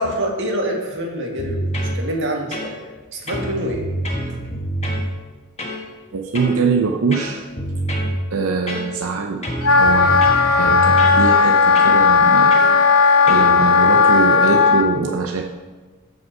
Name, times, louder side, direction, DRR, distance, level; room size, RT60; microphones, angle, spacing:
voice 1, 0.0-1.7 1.9-2.8 3.1-3.9 4.3-4.4, equal, 60° right, 1 dB, 1.8 m, -25 dB
sound 1, 1.4-2.0 2.5-3.0 3.3-5.1 5.6-5.8 6.3-6.6 7.1-8.2 8.7-9.1 9.4-11.2 11.7-12.0 12.5-12.7 13.3-13.5, right 1 dB, 30° left, 1.3 m, -26 dB
voice 2, 6.1-7.4 8.3-12.6 13.2-15.4, right 4 dB, 85° right, 3 dB, 0.7 m, -23 dB
Wind instrument woodwind instrument, 9.6-14.8, left 5 dB, 80° left, 0.8 m, -14 dB
14.0 x 5.3 x 4.7 m, 1.3 s
head